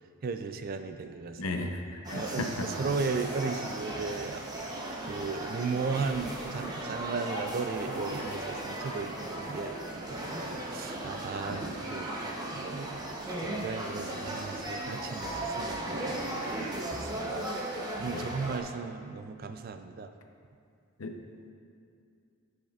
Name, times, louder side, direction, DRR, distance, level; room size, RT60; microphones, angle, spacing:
voice 1, 0.2-1.4 2.2-4.4 5.0-20.1, right 4 dB, 40° right, 7 dB, 0.3 m, -36 dB
voice 2, 1.4-2.7 11.5-11.6 18.1-18.3 21.0-21.1, left 2 dB, 80° left, 4 dB, 0.7 m, -35 dB
sound 1, 2.0-18.6, right 1 dB, 20° right, 0.8 m, -36 dB
13.5 x 5.3 x 2.4 m, 2.4 s
head